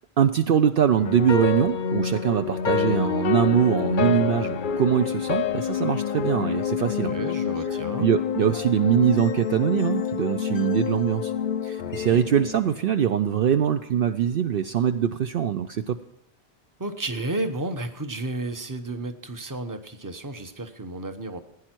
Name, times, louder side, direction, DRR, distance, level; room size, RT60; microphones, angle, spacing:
voice 1, 0.2-7.1 8.0-11.3 11.6-16.0, right 9 dB, 65° right, 9 dB, 0.7 m, -23 dB
sound 1, 1.0-13.2, left 7 dB, 55° left, 0.7 m, -27 dB
voice 2, 6.8-8.1 12.0-12.2 16.8-21.4, right 2 dB, 20° right, 8 dB, 1.0 m, -32 dB
16.0 x 10.0 x 4.5 m, 0.84 s
omnidirectional pair, 1.1 m